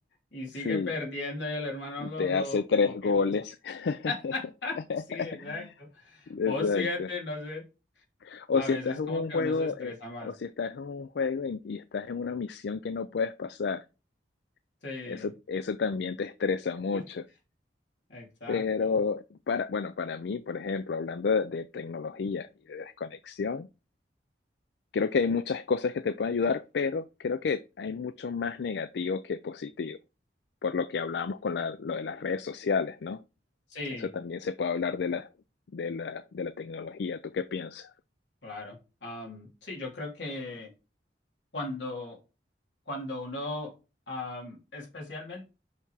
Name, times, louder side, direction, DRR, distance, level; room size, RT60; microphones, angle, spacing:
voice 1, 0.3-3.3 4.1-4.8 5.1-7.6 8.5-10.3 14.8-15.3 16.9-17.0 18.1-19.0 33.7-34.1 38.4-40.7 41.5-42.2 42.9-43.7 44.1-45.4, left 2 dB, 85° left, 3.0 m, -37 dB
voice 2, 2.0-4.3 4.9-5.7 6.3-7.1 8.2-9.9 10.2-13.8 15.1-17.3 18.5-23.7 24.9-30.0 30.6-33.2 34.0-35.3 35.7-37.9, left 5 dB, 65° left, 0.4 m, -30 dB
5.8 x 5.7 x 4.7 m
head